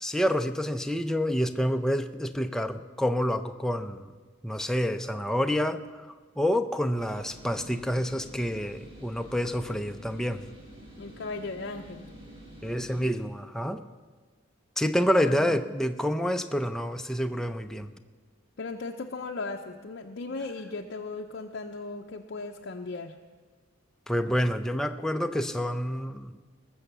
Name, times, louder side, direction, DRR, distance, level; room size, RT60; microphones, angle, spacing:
voice 1, 0.0-4.1 4.4-6.1 6.4-10.4 12.6-13.8 14.8-17.9 24.1-26.3, equal, 5° left, 7 dB, 0.5 m, -28 dB
sound 1, 7.0-13.1, equal, 30° right, 5.1 m, -48 dB
voice 2, 11.0-12.1 15.2-15.7 18.6-23.1, left 3 dB, 55° left, 2 dB, 0.6 m, -37 dB
19.5 x 7.1 x 6.7 m, 1.4 s
head